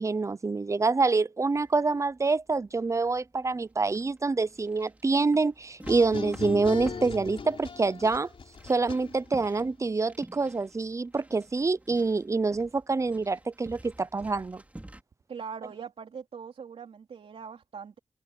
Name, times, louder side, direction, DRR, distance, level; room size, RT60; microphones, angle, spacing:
voice 1, 0.0-8.3 8.6-14.6, right 3 dB, 30° right, 0.6 m, -26 dB
sound 1, 1.5-15.0, right 1 dB, 15° right, 5.2 m, -50 dB
sound 2, 5.8-9.5, left 5 dB, 65° left, 4.1 m, -38 dB
voice 2, 15.3-18.0, right 6 dB, 90° right, 3.6 m, -41 dB
wide cardioid pair, 100°, 10 cm